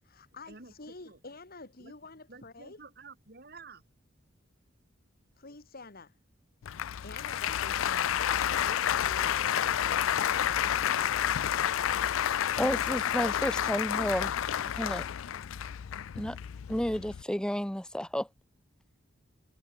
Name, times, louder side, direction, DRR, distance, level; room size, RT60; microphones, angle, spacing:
voice 1, 0.0-2.8 5.4-6.1 6.7-11.8, left 3 dB, 50° left, 2.1 m, -49 dB
voice 2, 2.3-3.8, right 4 dB, 50° right, 5.2 m, -50 dB
Applause, 6.6-17.2, left 10 dB, 85° left, 0.4 m, -30 dB
voice 3, 12.6-14.4 14.7-15.1 16.2-16.4 16.7-18.3, equal, 5° left, 0.7 m, -31 dB
head